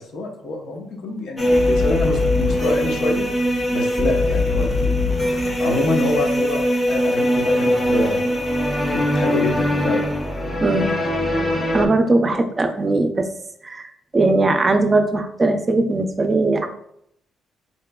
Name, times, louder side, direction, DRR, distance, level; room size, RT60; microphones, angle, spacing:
voice 1, 0.1-3.2 3.7-4.9 5.6-8.2 8.9-10.0 12.3-12.4, left 2 dB, 70° left, 1 dB, 0.7 m, -26 dB
sound 1, 1.4-11.9, left 1 dB, 20° left, 0.7 m, -21 dB
voice 2, 10.6-10.9 11.7-13.3 13.6-16.7, right 2 dB, 30° right, 6 dB, 0.5 m, -19 dB
3.9 x 2.9 x 2.2 m, 0.71 s
cardioid pair, 90°, 0 cm